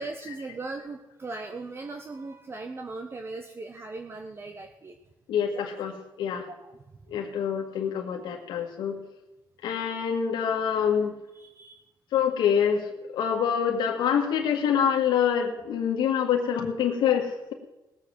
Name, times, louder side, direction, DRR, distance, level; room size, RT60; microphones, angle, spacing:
voice 1, 0.0-5.0 5.5-5.6 6.5-6.7 11.3-11.8, right 3 dB, 30° right, 5 dB, 1.3 m, -38 dB
voice 2, 5.3-5.9 6.2-6.5 7.1-9.0 9.6-11.1 12.1-17.5, left 8 dB, 85° left, 2 dB, 1.8 m, -26 dB
18.5 x 7.5 x 7.5 m, 1.0 s
cardioid pair, 100°, 8 cm